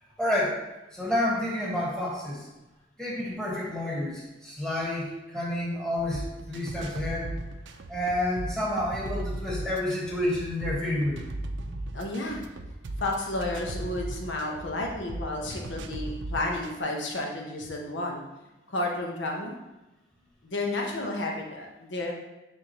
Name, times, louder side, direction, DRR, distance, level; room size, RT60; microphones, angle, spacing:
voice 1, 0.2-0.6 0.9-2.5 3.0-7.3 7.9-11.2, left 1 dB, 5° left, -5 dB, 1.5 m, -29 dB
sound 1, 6.0-16.8, right 1 dB, 85° right, 0.5 m, -37 dB
voice 2, 11.9-12.4 13.0-18.3 18.7-19.6 20.4-22.1, left 2 dB, 85° left, 0 dB, 1.2 m, -31 dB
9.8 x 3.6 x 3.0 m, 1.0 s
head